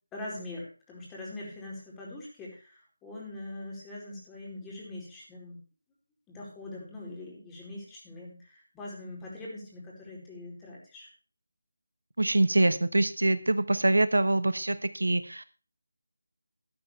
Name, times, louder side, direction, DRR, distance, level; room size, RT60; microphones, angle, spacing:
voice 1, 0.1-5.6 6.3-11.1, left 2 dB, 10° left, -4 dB, 4.7 m, -42 dB
voice 2, 12.2-15.4, right 2 dB, 80° right, 14 dB, 1.1 m, -24 dB
13.0 x 12.5 x 3.3 m, 0.36 s
figure-of-eight pair, 165°, 0 cm